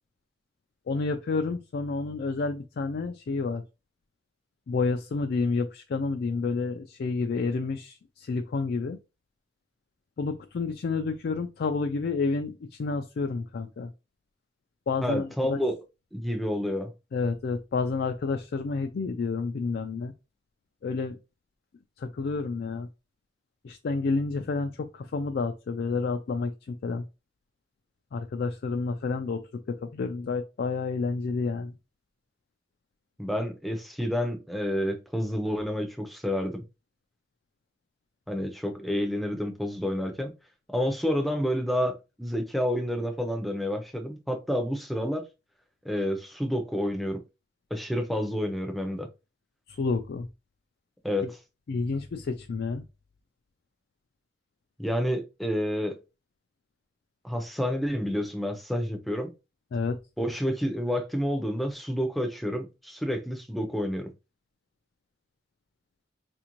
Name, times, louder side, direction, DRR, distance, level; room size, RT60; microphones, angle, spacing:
voice 1, 0.9-3.6 4.7-9.0 10.2-13.9 14.9-15.6 17.1-20.1 20.8-21.2 22.0-22.9 23.6-27.0 28.1-29.4 29.8-31.7 49.7-50.3 51.7-52.8 59.7-60.0, left 4 dB, 55° left, 0.3 m, -29 dB
voice 2, 15.0-15.8 16.1-16.9 33.2-36.6 38.3-40.3 40.7-45.2 45.8-47.2 47.7-49.1 51.0-51.4 54.8-56.0 57.2-59.3 60.2-64.1, equal, ahead, 0.6 m, -29 dB
4.3 x 2.5 x 2.9 m
head